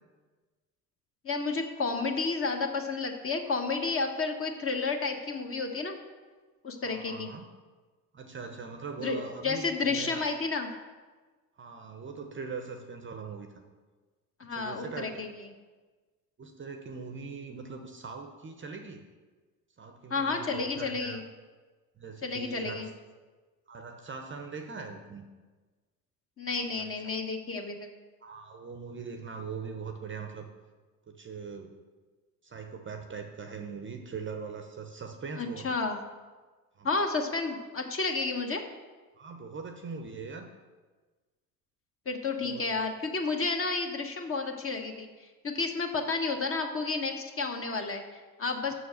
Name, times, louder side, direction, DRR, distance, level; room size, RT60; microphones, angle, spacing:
voice 1, 1.2-6.0 6.6-7.3 9.0-10.7 14.4-15.3 20.1-21.2 22.2-22.9 26.4-27.9 35.4-36.0 36.8-38.6 42.0-45.1 45.4-48.7, left 4 dB, 25° left, 4 dB, 1.2 m, -31 dB
voice 2, 6.8-7.4 8.1-10.3 11.6-13.6 14.4-15.2 16.4-19.0 19.8-21.2 22.0-22.9 23.7-25.3 26.7-27.1 28.2-30.5 31.1-31.8 32.4-35.8 36.8-36.9 39.2-40.5 42.4-42.8 48.7-48.8, right 5 dB, 25° right, 6 dB, 0.8 m, -41 dB
6.9 x 6.3 x 6.4 m, 1.3 s
figure-of-eight pair, 65°, 50 cm